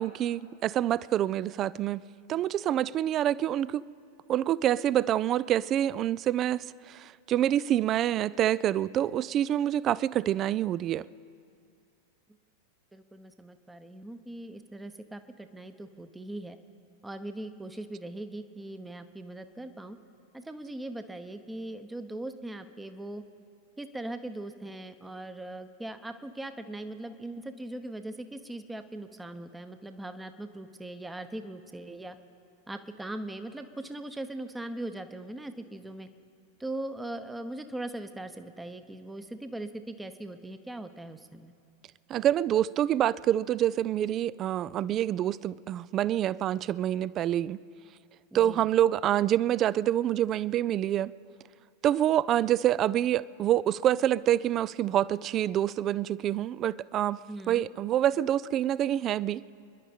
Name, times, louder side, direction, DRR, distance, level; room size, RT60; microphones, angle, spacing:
voice 1, 0.0-3.8 4.3-11.1 42.1-47.6 48.3-51.1 51.8-57.2 57.5-59.4, right 11 dB, 30° right, 0.3 m, -27 dB
voice 2, 12.9-16.6 17.0-20.0 20.3-23.2 23.8-32.2 32.7-36.1 36.6-41.5 48.3-48.7 57.3-57.6, right 1 dB, 5° right, 0.8 m, -40 dB
27.5 x 11.0 x 4.4 m
figure-of-eight pair, 90°, 0 cm